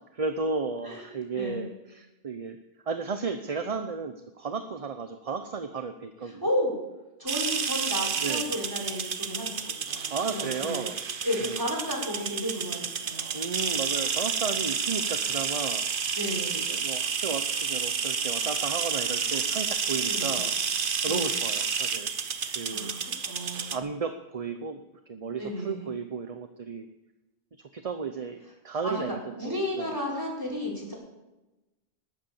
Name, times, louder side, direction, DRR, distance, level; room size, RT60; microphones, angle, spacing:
voice 1, 0.1-2.6 2.9-6.4 8.2-8.5 10.1-11.0 11.4-11.7 13.3-16.2 16.5-22.1 22.5-22.9 23.7-26.9 27.7-28.4 28.6-30.0, right 5 dB, 40° right, 8 dB, 0.8 m, -34 dB
voice 2, 1.3-1.7 6.4-6.7 7.2-10.8 11.2-13.4 16.2-16.6 20.1-20.4 21.1-21.3 22.4-23.8 25.4-25.9 28.8-29.0 29.4-30.9, left 1 dB, 20° right, -4 dB, 5.3 m, -33 dB
sound 1, 7.3-23.8, right 6 dB, 55° right, 1.0 m, -30 dB
19.5 x 8.6 x 7.1 m, 1.0 s
omnidirectional pair, 1.1 m